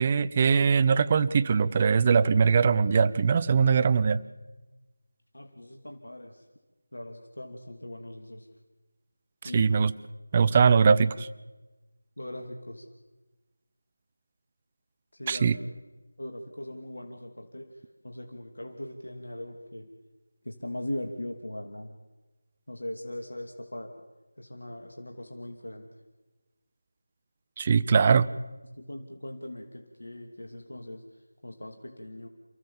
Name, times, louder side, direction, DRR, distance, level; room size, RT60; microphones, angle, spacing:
voice 1, 0.0-4.2 9.5-9.9 10.3-11.3 15.3-15.6 27.6-28.3, right 5 dB, 25° right, 17 dB, 0.6 m, -21 dB
voice 2, 5.3-6.5 6.9-8.5 9.4-9.8 12.2-12.9 15.1-15.6 16.2-19.9 20.4-21.9 22.7-24.0 24.4-25.9 28.8-32.3, left 1 dB, 70° left, 3 dB, 2.7 m, -40 dB
29.0 x 15.5 x 7.4 m, 1.2 s
figure-of-eight pair, 165°, 0 cm